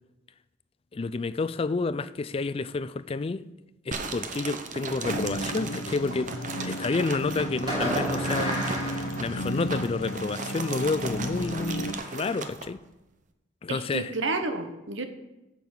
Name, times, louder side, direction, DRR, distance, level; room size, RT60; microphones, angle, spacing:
voice 1, 0.9-3.5 3.9-6.3 6.6-8.6 9.2-12.8 13.6-14.1, left 3 dB, 30° left, 0.3 m, -30 dB
sound 1, 3.9-12.7, right 4 dB, 40° right, 0.8 m, -36 dB
sound 2, 5.1-12.0, equal, 80° left, 0.7 m, -34 dB
Fireworks, 6.1-7.1 7.7-9.9, equal, 25° right, 3.6 m, -33 dB
voice 2, 13.7-15.1, right 3 dB, 65° right, 1.0 m, -30 dB
8.5 x 6.1 x 7.0 m
head